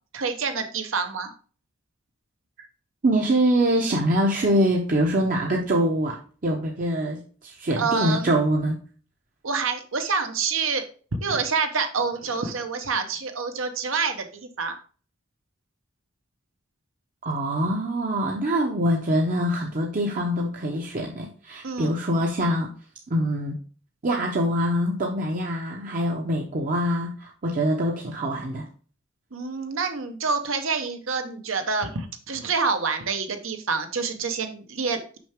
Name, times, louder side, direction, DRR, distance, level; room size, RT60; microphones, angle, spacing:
voice 1, 0.1-1.3 7.8-8.3 9.4-10.9 11.2-14.8 21.6-21.9 29.3-35.2, right 5 dB, 75° right, 7 dB, 1.0 m, -27 dB
voice 2, 3.0-8.8 17.2-22.7 23.1-23.6 24.0-28.7, equal, 40° right, 0 dB, 0.8 m, -24 dB
6.1 x 5.6 x 3.5 m, 0.40 s
head